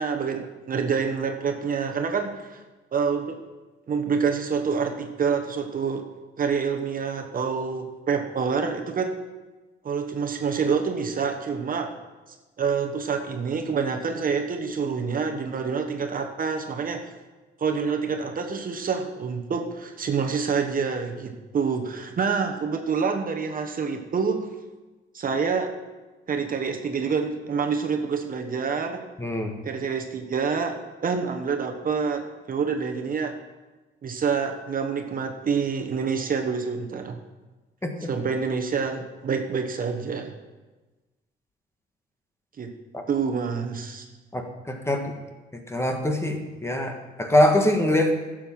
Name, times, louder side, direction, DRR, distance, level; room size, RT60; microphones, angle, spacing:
voice 1, 0.0-2.6 2.9-3.4 3.9-6.0 6.4-9.2 9.8-11.9 12.6-17.1 17.6-24.4 25.1-25.7 26.3-29.0 29.6-33.3 34.0-37.2 38.1-40.3 42.6-42.7 43.1-44.0, right 5 dB, 45° right, 4 dB, 1.2 m, -27 dB
voice 2, 29.2-29.5 37.8-38.1 42.9-43.0 44.3-45.1 45.7-48.1, left 1 dB, 15° left, 4 dB, 1.5 m, -23 dB
11.5 x 7.5 x 5.8 m, 1.2 s
cardioid pair, 90°, 20 cm